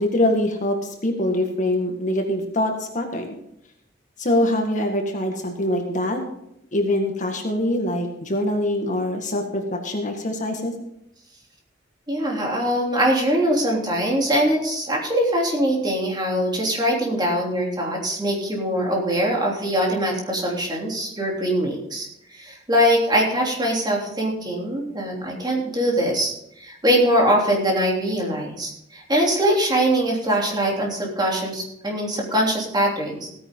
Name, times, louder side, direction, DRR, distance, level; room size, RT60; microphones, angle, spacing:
voice 1, 0.0-3.3 4.2-6.2 6.7-10.7, left 1 dB, 40° left, 3 dB, 1.8 m, -24 dB
voice 2, 12.1-22.1 22.3-33.3, equal, 20° right, -1 dB, 3.2 m, -22 dB
16.0 x 9.6 x 3.8 m, 0.77 s
head